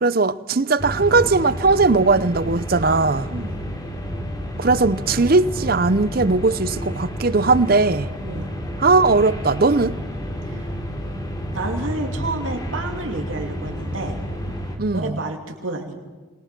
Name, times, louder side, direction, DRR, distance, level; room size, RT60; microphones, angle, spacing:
voice 1, 0.0-3.3 4.6-8.1 8.8-10.0 14.8-15.2, right 3 dB, 50° right, 0.7 m, -18 dB
sound 1, 0.8-14.8, equal, 20° left, 3.1 m, -30 dB
voice 2, 3.3-3.6 8.2-8.5 10.5-10.7 11.5-14.2 14.9-16.0, right 2 dB, 80° right, 2.7 m, -30 dB
28.0 x 22.5 x 6.1 m
head